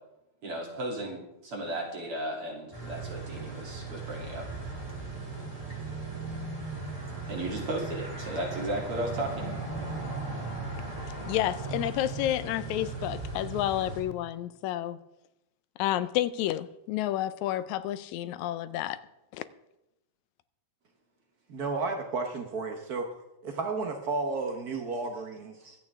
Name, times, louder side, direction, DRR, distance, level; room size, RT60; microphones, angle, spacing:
voice 1, 0.4-4.5 7.3-9.6 25.6-25.8, right 1 dB, 50° right, -2 dB, 3.8 m, -35 dB
sound 1, 2.7-14.0, right 3 dB, 10° right, 4.3 m, -37 dB
voice 2, 11.3-15.0 15.8-19.0 19.3-19.5, left 13 dB, 80° left, 15 dB, 1.9 m, -30 dB
voice 3, 21.5-23.1 23.4-25.7, right 3 dB, 85° right, 4 dB, 0.8 m, -32 dB
24.0 x 8.8 x 3.6 m, 0.89 s
omnidirectional pair, 3.4 m